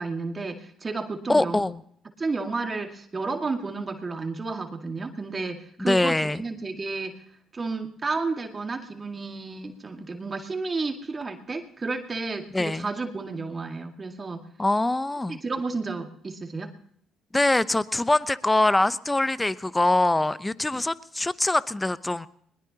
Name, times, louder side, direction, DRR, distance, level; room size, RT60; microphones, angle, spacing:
voice 1, 0.0-1.6 2.2-7.2 7.5-14.5 15.3-16.7, right 3 dB, 30° right, 4 dB, 2.0 m, -32 dB
voice 2, 1.3-1.8 5.9-6.4 12.5-12.9 14.6-15.4 17.3-22.3, left 2 dB, 15° left, 16 dB, 0.8 m, -23 dB
21.0 x 20.5 x 2.9 m, 0.66 s
hypercardioid pair, 60°, 0 cm